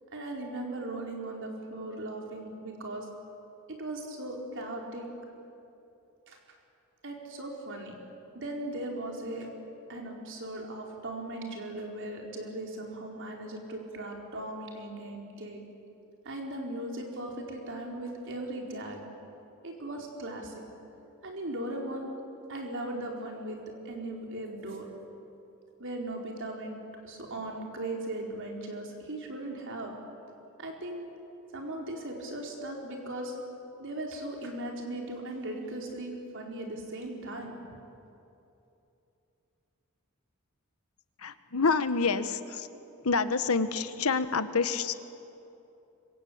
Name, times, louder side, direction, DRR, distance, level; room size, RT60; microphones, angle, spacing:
voice 1, 0.1-3.1 3.7-5.1 6.3-6.4 7.0-7.9 8.3-9.5 9.9-15.6 16.2-19.0 19.6-20.7 21.2-22.1 22.5-24.9 25.8-29.9 30.6-31.1 31.5-33.3 33.8-37.6, right 1 dB, 60° right, 0 dB, 4.5 m, -38 dB
voice 2, 41.2-42.7 43.0-44.9, left 4 dB, 80° left, 11 dB, 1.2 m, -27 dB
25.5 x 23.5 x 8.7 m, 2.8 s
head